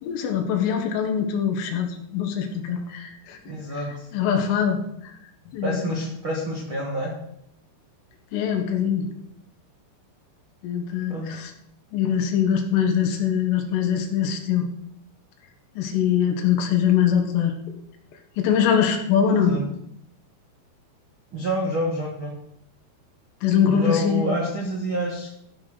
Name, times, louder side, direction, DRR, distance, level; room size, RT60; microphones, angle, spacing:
voice 1, 0.0-3.4 4.1-4.8 5.5-5.9 8.3-9.1 10.6-11.5 11.9-14.7 15.8-17.5 18.4-19.7 23.4-24.4, left 8 dB, 75° left, 3 dB, 4.0 m, -23 dB
voice 2, 3.5-4.0 5.6-7.1 11.1-11.3 19.2-19.6 21.3-22.3 23.6-25.3, equal, 55° right, -2 dB, 1.4 m, -28 dB
15.5 x 5.9 x 6.4 m, 0.76 s
omnidirectional pair, 5.9 m